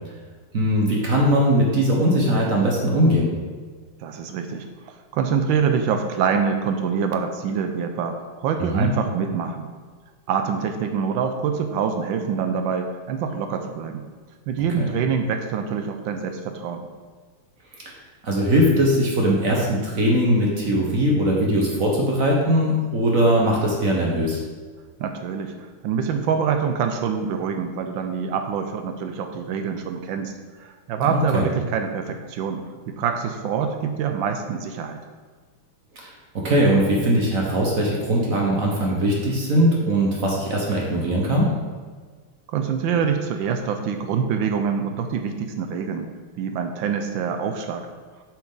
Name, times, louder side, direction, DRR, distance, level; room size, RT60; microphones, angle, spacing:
voice 1, 0.5-3.3 8.6-8.9 14.8-14.9 18.2-24.4 31.1-31.4 36.0-41.5, equal, 50° right, -2 dB, 1.2 m, -20 dB
voice 2, 4.0-9.7 10.3-14.0 14.5-16.9 25.0-30.3 30.6-35.0 42.5-46.1 46.4-47.9, right 6 dB, 75° right, 6 dB, 1.2 m, -25 dB
7.1 x 6.0 x 3.8 m, 1.5 s
omnidirectional pair, 2.3 m